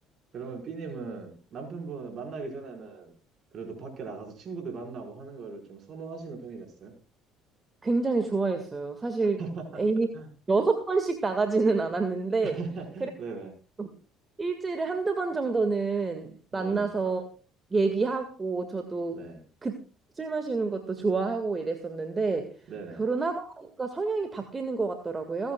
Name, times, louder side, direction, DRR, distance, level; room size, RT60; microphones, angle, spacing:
voice 1, 0.3-3.1 3.5-6.9 9.4-9.8 10.1-10.3 12.4-13.5 16.5-16.9 19.1-19.4 22.7-23.0, right 4 dB, 45° right, 2 dB, 5.0 m, -39 dB
voice 2, 7.8-9.4 9.8-10.1 10.5-12.6 13.0-13.1 13.8-13.9 14.4-17.2 17.7-19.3 19.6-19.8 20.1-22.6 23.0-25.5, right 4 dB, 25° right, 7 dB, 1.8 m, -28 dB
28.5 x 9.7 x 2.3 m, 0.34 s
figure-of-eight pair, 55°, 0 cm